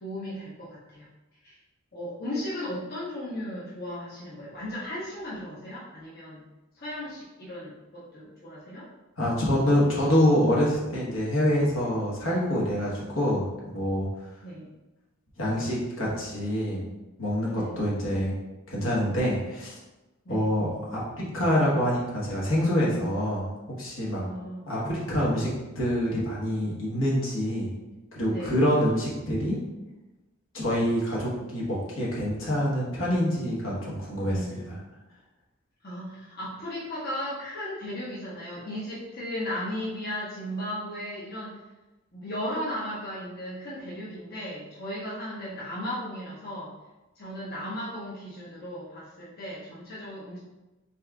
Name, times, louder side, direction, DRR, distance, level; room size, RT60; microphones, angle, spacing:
voice 1, 0.0-1.1 1.4-1.6 1.9-6.4 6.7-8.9 14.4-14.7 17.5-17.7 20.2-20.5 24.2-24.7 28.3-28.6 34.3-34.8 35.8-41.6 42.1-46.7 47.2-50.4, equal, 50° left, -8 dB, 0.9 m, -36 dB
voice 2, 9.2-14.1 15.4-16.9 17.2-18.4 18.7-19.7 20.3-23.5 23.8-24.2 24.7-25.5 25.7-27.7 28.1-29.6 30.5-34.8, equal, 75° left, -6 dB, 1.2 m, -26 dB
4.2 x 3.6 x 2.3 m, 1.0 s
head